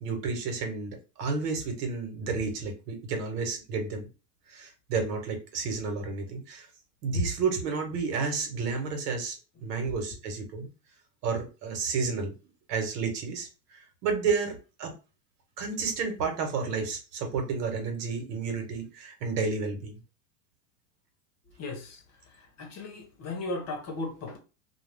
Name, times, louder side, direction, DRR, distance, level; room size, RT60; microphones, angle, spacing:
voice 1, 0.0-4.1 4.5-6.7 7.0-10.7 11.2-12.3 12.7-14.9 15.6-20.0, right 4 dB, 75° right, 1.2 m, -31 dB
voice 2, 21.6-22.0 22.6-24.4, left 2 dB, 30° left, 0.9 m, -36 dB
2.3 x 2.3 x 3.3 m
supercardioid pair, 115°, 48 cm